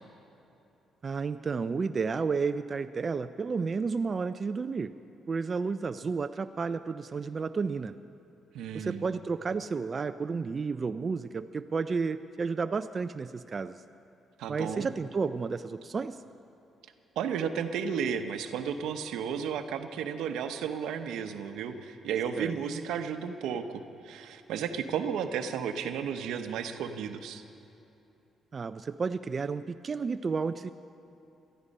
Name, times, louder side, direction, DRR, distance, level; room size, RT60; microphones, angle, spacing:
voice 1, 1.0-5.0 5.3-8.0 8.7-13.8 14.5-16.2 22.4-22.5 28.5-30.7, right 5 dB, 40° right, 10 dB, 0.4 m, -32 dB
voice 2, 8.5-9.1 14.4-14.9 17.2-27.4, right 7 dB, 85° right, 8 dB, 0.8 m, -33 dB
18.5 x 13.0 x 5.3 m, 2.9 s
cardioid pair, 90°, 0 cm